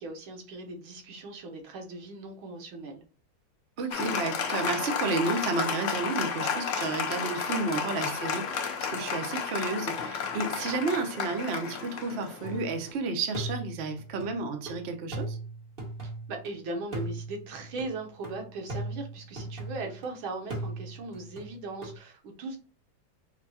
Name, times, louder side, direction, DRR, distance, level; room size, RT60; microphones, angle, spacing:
voice 1, 0.0-3.0 16.0-22.6, right 2 dB, 85° right, 1.8 m, -39 dB
voice 2, 3.8-15.4, right 3 dB, 60° right, 0.6 m, -32 dB
Applause, 3.9-12.9, left 6 dB, 85° left, 0.6 m, -32 dB
sound 1, 12.4-12.9 13.3-16.5 16.9-20.1 20.5-22.0, right 2 dB, 30° right, 1.3 m, -38 dB
5.0 x 2.3 x 4.1 m
omnidirectional pair, 2.2 m